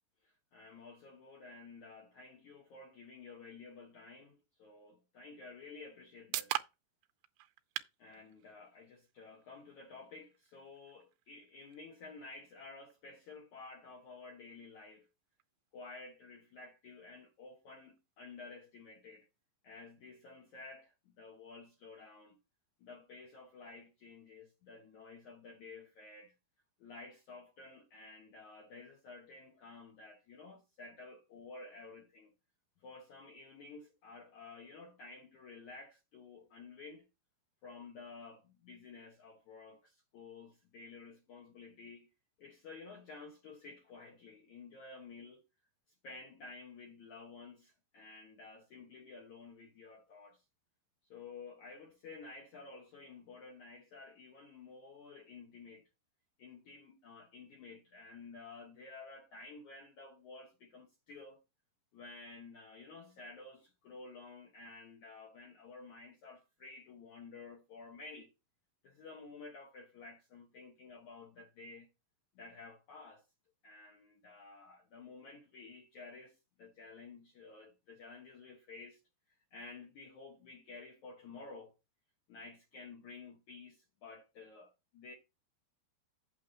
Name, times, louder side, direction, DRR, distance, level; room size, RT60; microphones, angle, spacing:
voice 1, 0.2-6.6 8.0-15.1 15.7-19.3 19.6-22.4 22.8-26.3 26.8-32.3 32.8-37.1 37.6-42.1 42.4-45.4 46.0-50.4 51.1-55.8 56.4-61.4 61.9-68.3 68.8-71.9 72.4-73.2 73.6-79.0 79.3-81.7 82.3-85.1, left 3 dB, 60° left, 2.1 m, -52 dB
sound 1, 5.6-19.5, right 15 dB, 80° right, 2.7 m, -48 dB
8.7 x 3.7 x 6.8 m
omnidirectional pair, 5.0 m